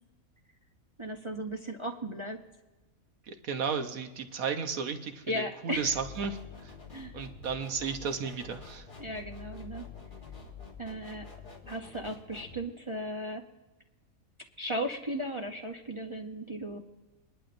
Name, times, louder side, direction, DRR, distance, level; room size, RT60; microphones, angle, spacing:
voice 1, 1.0-2.4 5.3-5.9 6.9-7.1 9.0-9.9 10.8-11.3 11.7-13.4 14.6-16.8, equal, 25° right, 1 dB, 0.7 m, -36 dB
voice 2, 3.3-6.4 6.6-6.7 7.1-8.9, right 6 dB, 75° right, 7 dB, 1.3 m, -34 dB
sound 1, 5.7-12.6, left 5 dB, 35° left, 1.8 m, -47 dB
22.5 x 11.5 x 2.6 m, 1.1 s
omnidirectional pair, 1.5 m